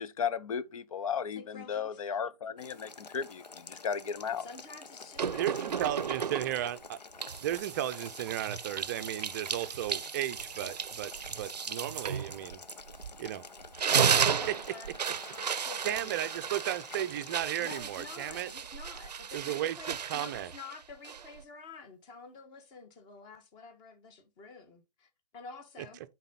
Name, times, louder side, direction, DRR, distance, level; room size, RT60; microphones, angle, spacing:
voice 1, 0.0-4.5, left 7 dB, 55° left, 0.8 m, -35 dB
voice 2, 1.3-2.2 4.4-6.2 14.0-16.2 17.6-26.0, left 4 dB, 20° left, 1.4 m, -49 dB
Boiling, 2.6-18.5, left 4 dB, 85° left, 1.0 m, -49 dB
sound 1, 5.2-6.7 7.2-13.3 13.6-21.4, right 7 dB, 80° right, 0.5 m, -34 dB
voice 3, 5.3-7.0 7.4-12.6 13.2-13.4 15.8-18.5 19.3-20.5 25.8-25.9, right 12 dB, 30° right, 0.5 m, -35 dB
9.0 x 4.1 x 3.9 m
figure-of-eight pair, 140°, 21 cm